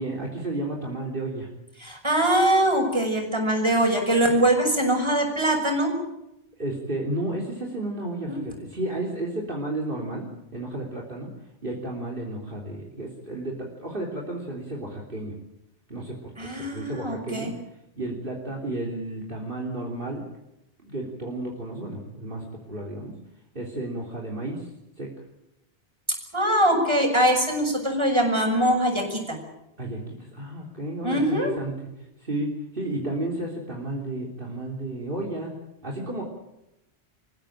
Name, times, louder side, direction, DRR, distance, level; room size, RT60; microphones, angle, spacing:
voice 1, 0.0-1.5 6.6-11.3 11.6-15.4 15.9-17.5 18.0-20.3 20.8-23.1 23.5-24.7 25.0-25.1 29.8-31.7 32.0-35.5 35.8-36.2, right 1 dB, 50° right, 0 dB, 3.7 m, -32 dB
voice 2, 1.8-5.9 8.3-8.4 16.4-17.5 26.3-29.4 31.0-31.5, right 1 dB, 25° right, 2 dB, 6.4 m, -22 dB
27.0 x 15.5 x 9.0 m, 0.89 s
omnidirectional pair, 1.2 m